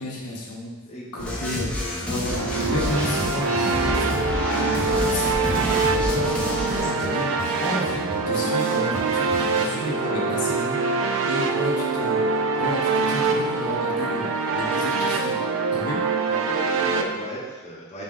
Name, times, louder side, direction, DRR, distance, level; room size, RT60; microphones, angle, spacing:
voice 1, 0.0-0.7 1.1-1.7 2.0-7.3 7.6-10.8 11.3-15.4 15.7-16.0, left 2 dB, 80° left, -3 dB, 0.7 m, -32 dB
voice 2, 0.9-2.1 9.7-10.5 16.3-18.0, equal, 30° left, -6 dB, 0.9 m, -37 dB
sound 1, 1.2-6.8, left 1 dB, 5° left, 0.5 m, -28 dB
sound 2, 2.1-9.8, right 1 dB, 40° right, 0.7 m, -35 dB
sound 3, 2.2-17.0, right 4 dB, 60° right, 0.3 m, -24 dB
4.0 x 3.6 x 2.4 m, 1.2 s
head